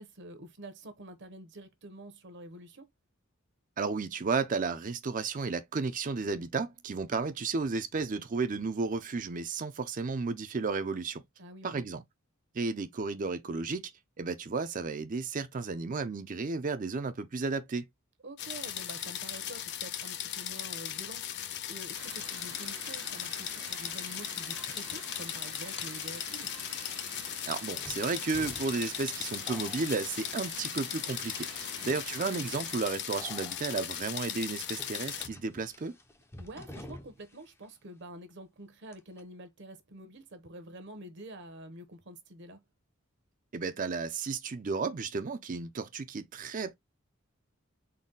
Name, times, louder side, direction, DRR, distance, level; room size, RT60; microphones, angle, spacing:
voice 1, 0.0-2.9 11.4-11.8 18.2-26.5 31.8-32.0 36.4-42.6, right 1 dB, 60° right, 0.9 m, -47 dB
voice 2, 3.8-11.2 11.6-12.0 12.5-13.9 14.2-17.8 27.5-35.9 43.5-46.8, right 4 dB, 40° right, 0.5 m, -33 dB
sound 1, 18.4-35.3, left 10 dB, 55° left, 0.5 m, -38 dB
sound 2, 21.9-32.8, right 6 dB, 90° right, 1.1 m, -48 dB
sound 3, 26.4-26.5 27.8-30.8 31.1-31.6 32.2-32.4 33.2-33.8 34.6-37.4 37.6-37.7 38.9-39.2, left 1 dB, 10° left, 0.6 m, -49 dB
4.0 x 2.2 x 3.7 m
head